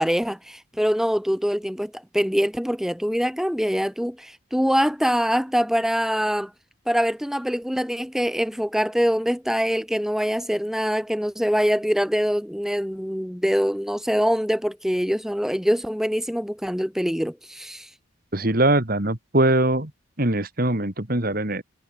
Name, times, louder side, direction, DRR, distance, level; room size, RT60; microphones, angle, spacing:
voice 1, 0.0-6.5 6.9-17.9, equal, ahead, 2.6 m, -24 dB
voice 2, 18.3-19.9 20.2-21.6, right 1 dB, 45° right, 2.4 m, -22 dB
head